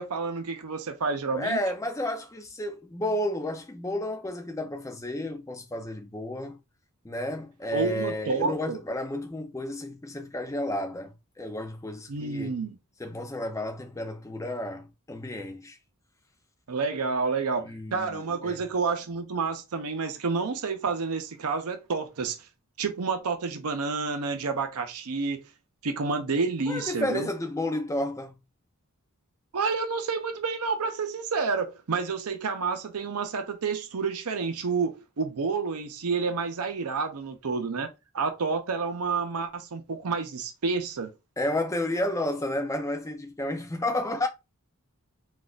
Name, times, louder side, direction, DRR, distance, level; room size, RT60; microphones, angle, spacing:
voice 1, 0.0-1.6 7.7-8.8 12.1-12.8 16.7-22.4 22.8-25.4 25.8-27.3 29.5-41.1, right 4 dB, 80° right, 0.6 m, -29 dB
voice 2, 1.3-6.6 7.0-12.5 13.0-15.8 17.6-18.6 26.7-28.3 41.4-44.3, left 1 dB, 15° left, 0.5 m, -31 dB
3.9 x 2.4 x 2.4 m
head